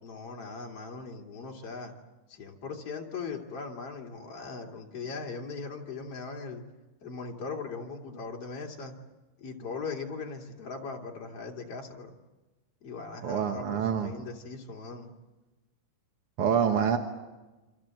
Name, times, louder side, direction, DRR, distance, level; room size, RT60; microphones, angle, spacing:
voice 1, 0.0-1.9 2.3-6.6 7.0-8.9 9.4-12.2 12.8-15.1, left 4 dB, 40° left, 0 dB, 3.5 m, -39 dB
voice 2, 13.2-14.1 16.4-17.0, right 7 dB, 60° right, 4 dB, 1.6 m, -26 dB
27.5 x 26.5 x 7.8 m, 1.1 s
omnidirectional pair, 4.4 m